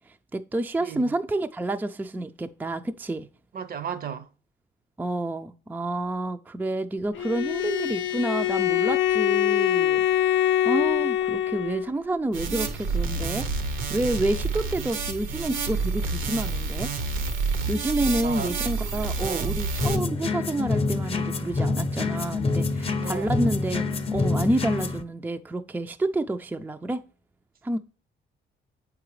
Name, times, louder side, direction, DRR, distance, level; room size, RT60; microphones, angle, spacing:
voice 1, 0.1-3.3 5.0-10.0 10.6-13.5 13.9-16.9 17.7-23.8 24.1-27.0 27.6-27.8, right 1 dB, 10° right, 0.3 m, -29 dB
voice 2, 3.5-4.2 18.2-18.5 19.2-19.6 23.0-23.4, right 8 dB, 45° right, 0.6 m, -34 dB
Bowed string instrument, 7.1-11.9, left 11 dB, 75° left, 0.5 m, -24 dB
sound 1, 12.3-20.0, right 4 dB, 85° right, 0.9 m, -29 dB
sound 2, 19.8-25.0, left 3 dB, 30° left, 0.6 m, -26 dB
7.6 x 4.8 x 3.1 m
cardioid pair, 90°, 20 cm